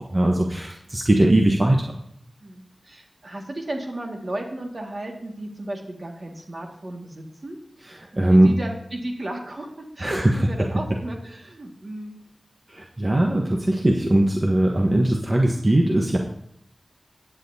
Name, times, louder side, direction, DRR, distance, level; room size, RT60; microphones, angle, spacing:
voice 1, 0.0-1.8 7.9-8.5 10.0-10.3 12.7-16.2, right 1 dB, 40° right, 1 dB, 1.1 m, -20 dB
voice 2, 2.4-7.6 8.3-12.2, right 1 dB, 60° right, 1 dB, 1.9 m, -34 dB
17.5 x 9.0 x 2.8 m, 0.72 s
cardioid pair, 40°, 0 cm